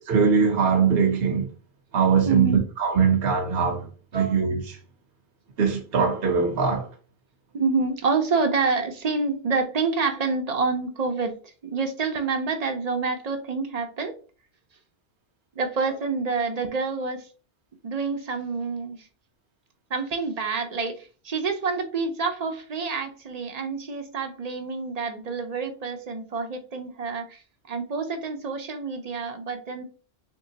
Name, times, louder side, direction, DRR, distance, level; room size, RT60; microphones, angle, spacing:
voice 1, 0.1-1.5 1.9-3.9 4.1-4.8 5.6-6.9, right 6 dB, 65° right, 1.0 m, -21 dB
voice 2, 2.3-2.6 4.1-4.4 7.5-14.1 15.6-17.3 17.8-19.1 19.9-27.4 27.7-29.8, right 4 dB, 45° right, 0.6 m, -27 dB
3.6 x 3.6 x 2.8 m
omnidirectional pair, 1.2 m